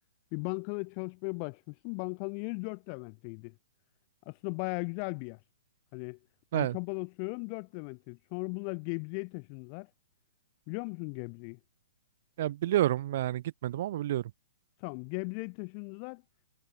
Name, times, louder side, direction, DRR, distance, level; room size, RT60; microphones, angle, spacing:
voice 1, 0.3-3.6 4.3-5.4 5.9-6.2 6.5-9.9 10.7-11.6 14.8-16.2, left 40 dB or more, 35° left, 2.0 m, -37 dB
voice 2, 12.4-14.2, right 13 dB, 50° right, 0.7 m, -29 dB
hypercardioid pair, 150°, 0 cm